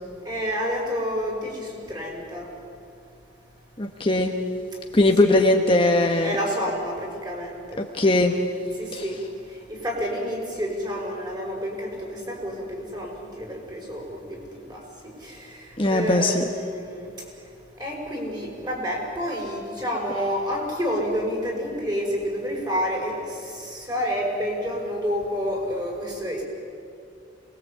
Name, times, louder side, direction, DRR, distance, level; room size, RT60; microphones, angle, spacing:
voice 1, 0.2-2.5 5.2-5.4 6.2-7.8 8.8-9.2 9.7-14.4 14.7-14.8 15.2-17.1 17.8-26.4, equal, 20° right, -1 dB, 5.8 m, -29 dB
voice 2, 3.8-4.3 4.9-6.4 7.8-8.3 8.9-9.0 15.8-16.4, left 2 dB, 25° left, 3 dB, 1.1 m, -20 dB
27.0 x 21.0 x 8.4 m, 2.4 s
head